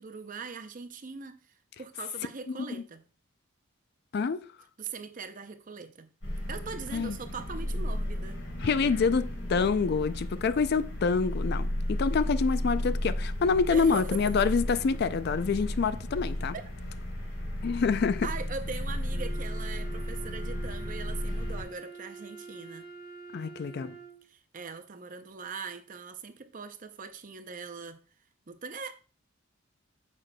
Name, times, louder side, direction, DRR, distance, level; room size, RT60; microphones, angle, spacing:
voice 1, 0.0-1.4 1.8-3.0 4.8-6.1 6.5-8.4 13.7-14.2 16.5-16.6 18.2-22.9 24.3-28.0 28.5-28.9, right 5 dB, 40° right, 0.6 m, -41 dB
voice 2, 2.5-2.8 4.1-4.4 6.9-7.2 8.6-16.5 17.6-18.3 23.3-24.0, left 5 dB, 50° left, 0.4 m, -27 dB
sound 1, 6.2-21.6, left 1 dB, 80° left, 3.4 m, -34 dB
Wind instrument woodwind instrument, 19.1-24.2, right 4 dB, 25° right, 1.3 m, -45 dB
8.8 x 6.4 x 2.2 m
head